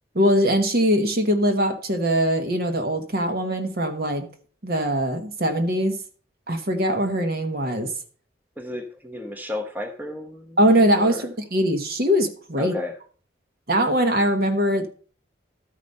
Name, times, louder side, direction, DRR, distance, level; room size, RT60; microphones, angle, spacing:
voice 1, 0.1-4.3 4.6-6.0 6.5-7.9 10.6-12.7 13.7-14.9, equal, 55° right, 6 dB, 1.2 m, -21 dB
voice 2, 8.6-10.6 10.9-11.3 12.6-13.0, left 2 dB, 10° right, 4 dB, 0.9 m, -33 dB
12.5 x 5.0 x 5.3 m, 0.42 s
head